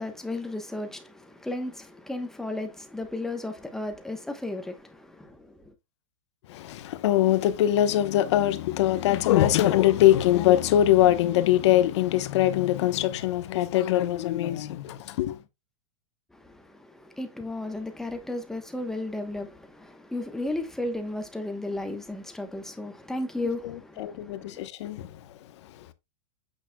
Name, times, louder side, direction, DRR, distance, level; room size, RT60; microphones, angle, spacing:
voice 1, 0.0-5.7 16.3-24.7, left 2 dB, ahead, 1.1 m, -34 dB
voice 2, 6.5-15.4 23.6-25.1, left 13 dB, 55° left, 1.1 m, -22 dB
8.6 x 6.5 x 2.3 m
supercardioid pair, 160°, 17 cm